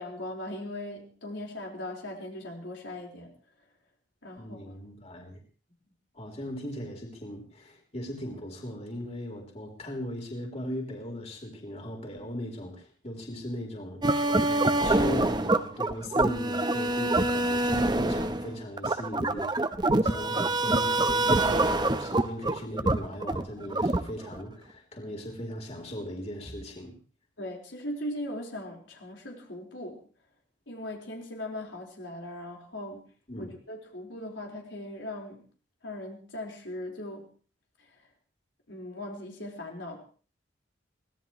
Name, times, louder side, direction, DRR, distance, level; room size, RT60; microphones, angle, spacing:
voice 1, 0.0-3.3 4.2-4.8 27.4-30.0 30.7-33.1 33.4-35.4 35.8-37.3 37.8-38.0 38.7-40.0, left 1 dB, 90° left, 0 dB, 4.6 m, -39 dB
voice 2, 4.4-5.4 6.1-19.5 20.0-26.9 33.3-33.5, equal, 35° left, 1 dB, 3.9 m, -38 dB
sound 1, 14.0-24.4, right 2 dB, 25° right, 0.9 m, -25 dB
23.5 x 18.0 x 3.2 m, 0.41 s
head